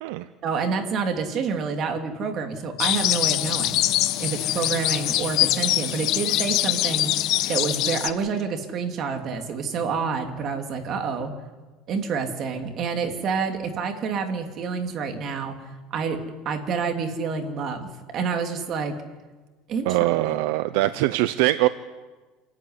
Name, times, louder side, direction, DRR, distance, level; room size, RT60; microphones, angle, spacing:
voice 1, 0.4-3.9 4.2-7.1 7.5-11.3 11.9-15.6 15.9-19.0 19.7-20.0, right 5 dB, 35° right, 5 dB, 3.1 m, -28 dB
sound 1, 2.8-8.1, left 15 dB, 50° left, 1.2 m, -23 dB
voice 2, 19.8-21.7, right 17 dB, 70° right, 13 dB, 0.8 m, -22 dB
28.0 x 14.0 x 9.9 m, 1.3 s
cardioid pair, 150°, 0 cm